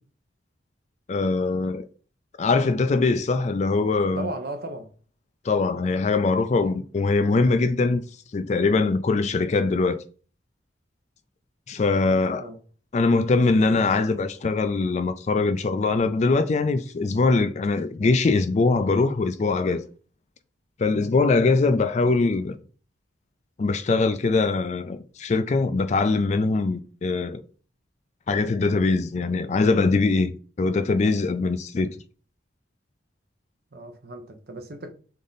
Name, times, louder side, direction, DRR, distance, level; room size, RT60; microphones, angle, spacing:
voice 1, 1.1-1.8 2.4-4.3 5.5-8.0 8.3-10.0 11.7-12.4 12.9-19.8 20.8-22.6 23.6-27.4 28.3-31.9, left 3 dB, 35° left, 0.3 m, -22 dB
voice 2, 4.1-4.9 12.0-12.6 33.7-34.9, right 2 dB, 50° right, 0.8 m, -36 dB
3.7 x 3.6 x 3.9 m
head